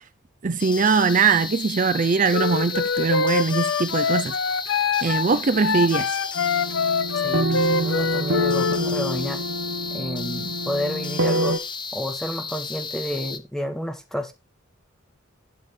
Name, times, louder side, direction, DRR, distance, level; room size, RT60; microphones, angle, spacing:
voice 1, 0.4-4.3 5.0-6.2, right 4 dB, 40° right, 0.5 m, -21 dB
sound 1, 0.6-13.4, left 5 dB, 25° left, 0.9 m, -34 dB
Wind instrument woodwind instrument, 2.3-8.8, left 5 dB, 70° left, 0.5 m, -25 dB
sound 2, 6.4-11.6, equal, 70° right, 1.0 m, -26 dB
voice 2, 7.2-9.4 9.9-11.6 11.9-14.3, equal, ahead, 1.6 m, -30 dB
12.0 x 8.4 x 3.3 m
head